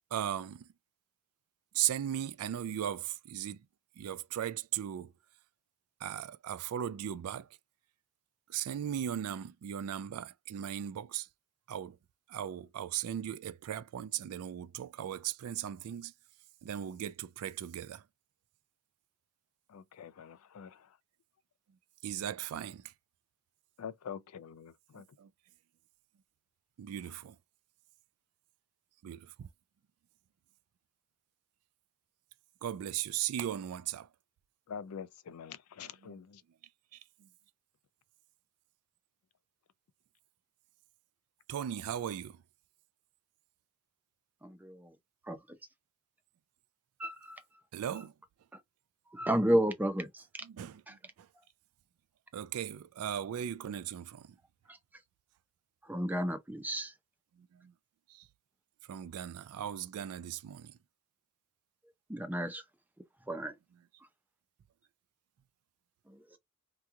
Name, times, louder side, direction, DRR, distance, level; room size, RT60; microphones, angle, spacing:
voice 1, 0.1-0.7 1.7-3.6 4.0-5.1 6.0-7.5 8.5-11.3 11.7-12.0 12.3-16.1 16.6-18.0 22.0-22.8 25.2-25.3 26.8-27.4 29.0-29.5 32.6-34.1 35.8-36.1 37.2-37.3 41.5-42.4 47.7-48.1 50.5-51.3 52.3-54.3 57.5-57.7 58.1-58.2 58.9-60.8, right 10 dB, 80° right, 0.3 m, -37 dB
voice 2, 19.7-20.9 23.8-25.0 34.7-36.4, left 7 dB, 80° left, 0.4 m, -45 dB
voice 3, 44.4-45.0 45.2-45.6 47.0-47.4 48.5-48.6 49.1-50.3 50.9-51.0 54.7-54.8 55.8-56.9 62.1-62.6 63.3-63.6 66.1-66.4, right 1 dB, 10° right, 0.5 m, -32 dB
2.9 x 2.3 x 3.6 m
head